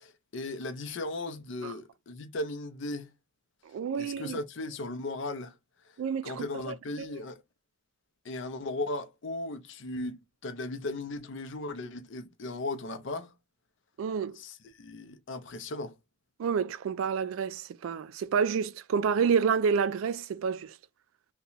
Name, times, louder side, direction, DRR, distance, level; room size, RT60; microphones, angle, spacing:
voice 1, 0.0-3.1 3.9-5.6 6.2-7.4 8.2-13.3 14.3-15.9, left 2 dB, 60° left, 0.6 m, -37 dB
voice 2, 3.7-4.4 6.0-7.1 14.0-14.4 16.4-20.7, right 6 dB, 80° right, 0.3 m, -29 dB
2.8 x 2.2 x 3.9 m
head